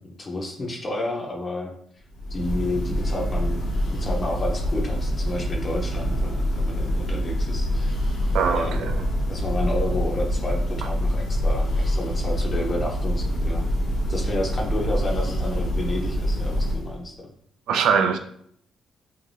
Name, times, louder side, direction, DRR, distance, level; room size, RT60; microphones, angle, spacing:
voice 1, 0.0-1.7 2.3-8.0 8.5-8.9 9.3-13.6 14.1-17.3, left 1 dB, 35° left, 0 dB, 0.6 m, -31 dB
Church bell, 2.1-17.0, equal, 85° left, 0.8 m, -25 dB
voice 2, 8.3-9.0 17.7-18.2, right 6 dB, 80° right, 7 dB, 0.3 m, -22 dB
2.5 x 2.2 x 3.2 m, 0.66 s
cardioid pair, 90°, 0 cm